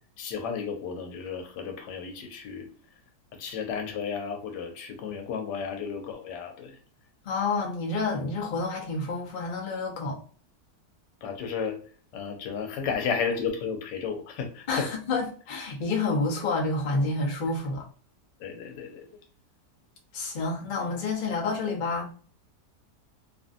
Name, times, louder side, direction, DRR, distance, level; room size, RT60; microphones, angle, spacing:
voice 1, 0.2-2.7 3.4-6.7 11.2-11.8 12.1-14.9 18.4-19.1, left 6 dB, 90° left, 1.3 m, -33 dB
voice 2, 7.3-10.2 14.7-17.8 20.1-22.1, left 3 dB, 60° left, 0.5 m, -29 dB
2.9 x 2.5 x 2.4 m
omnidirectional pair, 1.8 m